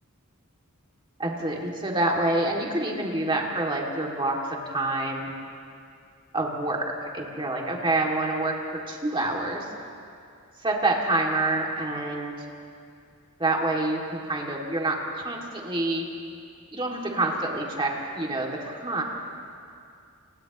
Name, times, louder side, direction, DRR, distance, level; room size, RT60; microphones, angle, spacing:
voice 1, 1.2-4.4 4.7-5.3 6.3-6.9 7.1-9.7 10.6-12.4 13.4-16.1 16.7-19.0, right 2 dB, 25° right, -1 dB, 2.5 m, -27 dB
29.5 x 29.0 x 3.1 m, 2.4 s
head